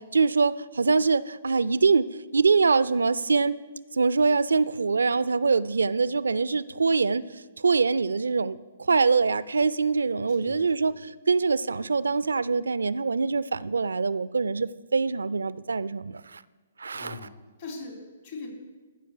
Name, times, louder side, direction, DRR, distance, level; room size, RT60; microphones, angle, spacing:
voice 1, 0.0-3.6 3.9-7.2 7.6-8.6 8.9-16.4 16.8-17.2, right 4 dB, 80° right, 0.4 m, -24 dB
voice 2, 10.3-10.9 16.9-18.5, left 3 dB, 55° left, 3.7 m, -41 dB
14.5 x 5.1 x 6.6 m
figure-of-eight pair, 130°, 0 cm